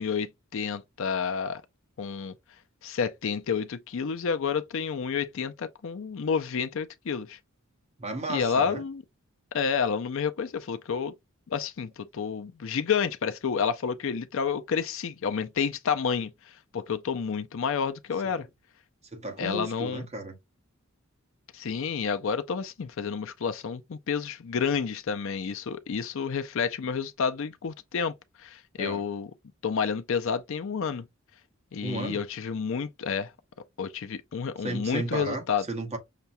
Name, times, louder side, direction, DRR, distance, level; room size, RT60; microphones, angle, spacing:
voice 1, 0.0-1.6 2.0-2.3 2.8-7.4 8.3-9.0 9.5-11.1 11.5-18.5 19.4-20.1 21.5-28.1 28.4-29.3 29.6-31.0 31.7-33.3 33.8-35.6, left 6 dB, 65° left, 0.5 m, -30 dB
voice 2, 8.0-8.8 18.2-18.3 19.1-20.4 28.8-29.0 31.8-32.2 34.6-36.0, right 2 dB, 30° right, 1.1 m, -34 dB
5.7 x 2.2 x 2.6 m
head